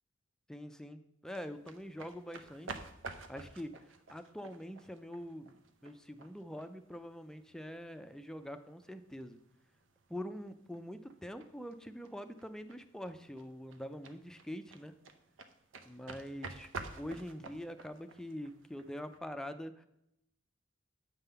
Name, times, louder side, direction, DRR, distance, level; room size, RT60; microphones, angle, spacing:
voice 1, 0.5-2.8 3.3-3.7 4.1-9.4 10.1-14.9 15.9-16.7 16.9-19.9, equal, 5° left, 9 dB, 0.4 m, -44 dB
sound 1, 1.3-19.2, right 3 dB, 85° right, 0.7 m, -51 dB
8.1 x 3.7 x 6.7 m, 0.78 s
head